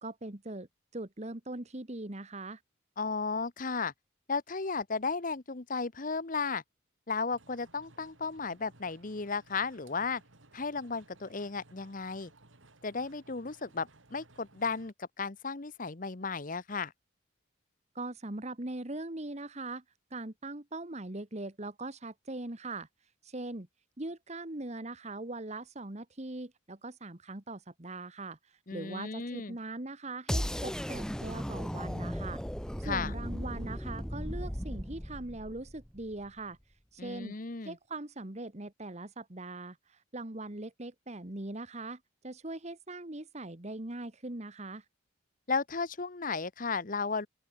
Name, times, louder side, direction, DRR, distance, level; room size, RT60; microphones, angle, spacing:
voice 1, 0.0-0.7 0.9-2.6 17.9-19.8 20.1-22.9 23.2-23.7 24.0-32.4 32.8-36.6 36.9-37.4 37.6-44.8, right 2 dB, 35° right, 1.6 m, -41 dB
voice 2, 3.0-3.9 4.3-6.6 7.1-10.2 10.5-12.3 12.8-16.9 28.7-29.6 32.8-33.1 37.0-37.8 45.5-47.3, left 4 dB, 45° left, 1.0 m, -34 dB
sound 1, 7.3-14.9, right 2 dB, 85° right, 4.8 m, -60 dB
sound 2, 30.3-36.3, equal, 5° left, 1.3 m, -36 dB
open air
head